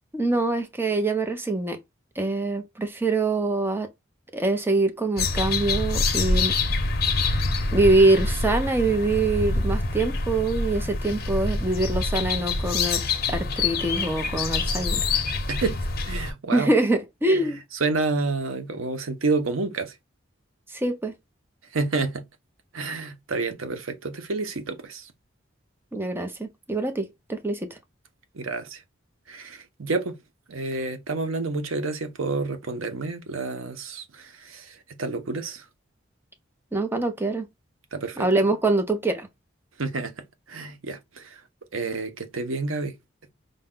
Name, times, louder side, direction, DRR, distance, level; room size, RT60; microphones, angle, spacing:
voice 1, 0.1-1.8 2.2-3.9 4.3-6.5 7.1-7.4 7.7-13.0 13.3-15.0 16.5-17.6 20.7-21.1 25.9-27.7 36.7-37.5 38.2-39.3, right 2 dB, 10° right, 0.6 m, -24 dB
sound 1, 5.2-16.3, left 3 dB, 50° left, 0.8 m, -26 dB
voice 2, 15.5-16.7 17.3-19.9 21.7-22.3 22.7-25.1 28.3-28.8 29.3-30.2 30.5-35.6 37.9-38.3 39.8-41.4 41.7-43.0, right 3 dB, 85° right, 0.8 m, -29 dB
5.2 x 2.2 x 3.7 m
head